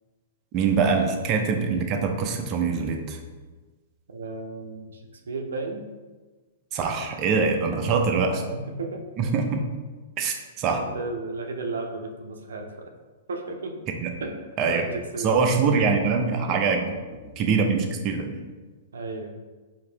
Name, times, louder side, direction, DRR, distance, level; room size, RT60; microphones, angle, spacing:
voice 1, 0.5-3.2 6.7-8.4 9.2-9.6 10.2-10.8 14.0-14.1 14.6-14.8 15.2-16.8 17.4-18.3, right 5 dB, 35° right, 3 dB, 0.6 m, -23 dB
voice 2, 4.1-5.0 5.3-5.8 7.8-9.0 10.7-12.9 13.3-13.8 14.2-14.4 14.7-15.6 16.5-16.6 18.9-19.3, right 3 dB, 85° right, 4 dB, 0.5 m, -34 dB
4.8 x 2.8 x 3.3 m, 1.3 s
hypercardioid pair, 125°, 0 cm